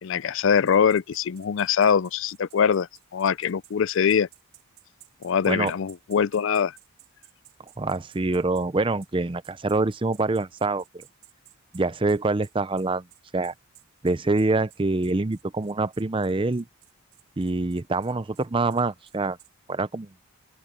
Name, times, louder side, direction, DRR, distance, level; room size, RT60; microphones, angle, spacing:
voice 1, 0.0-2.9 3.1-4.3 5.2-6.7, left 7 dB, 60° left, 0.4 m, -23 dB
sound 1, 0.7-8.7 9.0-9.1 9.4-19.5, right 16 dB, 70° right, 6.0 m, -54 dB
voice 2, 7.8-10.8 11.7-13.0 13.3-13.5 14.0-16.7 17.4-19.4 19.7-20.1, right 3 dB, 25° right, 0.5 m, -25 dB
open air
head